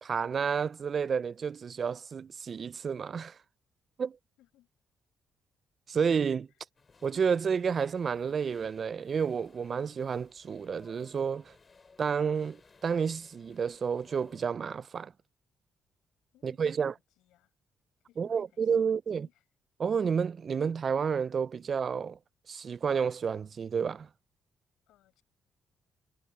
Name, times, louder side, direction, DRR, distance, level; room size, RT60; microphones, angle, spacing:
voice 1, 0.0-3.4 4.0-4.2 5.9-6.5 7.0-11.5 12.0-15.1 16.4-16.9 18.2-19.3 19.8-22.2 22.5-24.1, right 6 dB, 45° right, 0.3 m, -30 dB
voice 2, 4.4-4.7 6.5-6.6 16.3-17.5 18.1-18.9 19.2-19.4 24.9-25.2, left 15 dB, 90° left, 7.2 m, -66 dB
sound 1, 6.7-14.5, left 4 dB, 35° left, 2.7 m, -61 dB
cardioid pair, 90°, 0 cm